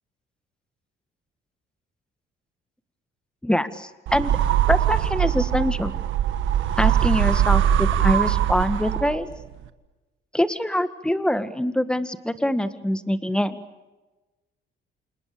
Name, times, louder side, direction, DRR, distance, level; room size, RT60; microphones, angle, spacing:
voice 1, 3.4-4.4 4.7-5.9 6.8-9.3 10.3-13.6, left 1 dB, 5° left, 10 dB, 1.8 m, -24 dB
sound 1, 4.1-9.4, right 10 dB, 80° right, 1.5 m, -22 dB
29.5 x 28.0 x 6.9 m, 1.1 s
cardioid pair, 90°, 20 cm